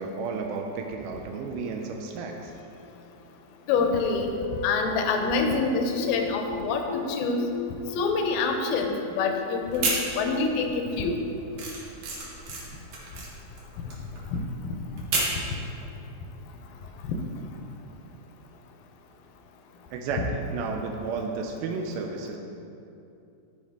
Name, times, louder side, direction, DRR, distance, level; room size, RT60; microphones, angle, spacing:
voice 1, 0.0-2.5 19.9-22.4, right 4 dB, 85° right, 2 dB, 2.4 m, -32 dB
voice 2, 3.7-4.3 4.6-7.5 8.0-9.9 10.2-11.2 14.3-14.4, left 4 dB, 85° left, 4 dB, 2.5 m, -26 dB
sound 1, 3.9-11.3, left 5 dB, 65° left, 1.3 m, -37 dB
sound 2, 9.7-10.6 10.9-15.5, right 3 dB, 60° right, 2.6 m, -31 dB
13.0 x 4.6 x 3.5 m, 2.8 s
omnidirectional pair, 4.2 m